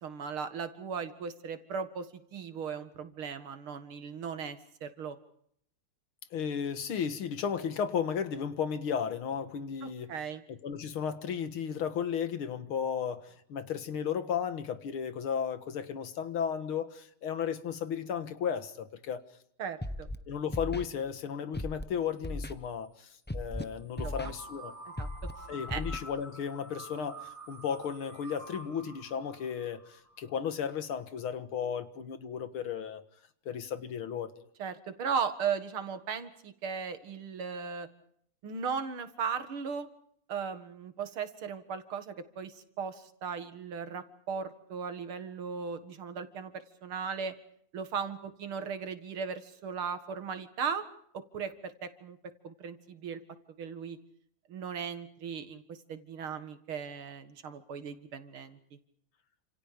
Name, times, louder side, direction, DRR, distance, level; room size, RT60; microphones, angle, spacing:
voice 1, 0.0-2.1 2.3-5.2 9.8-10.4 19.6-20.1 24.0-24.1 25.0-25.1 25.7-25.8 34.6-37.9 38.4-39.9 40.3-46.5 46.8-47.3 47.7-50.8 51.1-52.2 52.4-53.2 53.6-54.0 54.5-58.6, right 6 dB, 85° right, 9 dB, 2.7 m, -37 dB
voice 2, 6.3-10.1 10.5-19.2 20.3-24.7 25.5-33.0 33.5-34.3, left 7 dB, 80° left, 10 dB, 2.4 m, -34 dB
Scratching (performance technique), 19.8-20.2 20.5-20.8 21.5-21.8 22.2-22.5 23.3-23.6 24.0-24.3 25.0-25.3 25.7-26.0, left 1 dB, 15° left, 0.4 m, -36 dB
sound 1, 24.0-30.8, right 1 dB, 10° right, 2.7 m, -48 dB
29.5 x 27.5 x 5.2 m, 0.69 s
omnidirectional pair, 2.3 m